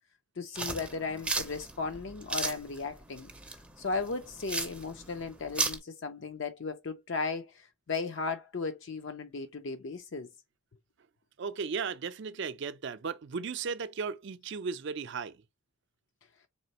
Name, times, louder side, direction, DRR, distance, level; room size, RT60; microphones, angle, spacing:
voice 1, 0.4-3.3 3.8-10.3, left 4 dB, 60° left, 0.5 m, -36 dB
sound 1, 0.6-5.8, right 3 dB, 5° right, 0.5 m, -35 dB
voice 2, 11.4-15.4, right 5 dB, 55° right, 0.4 m, -36 dB
4.2 x 3.3 x 2.8 m
head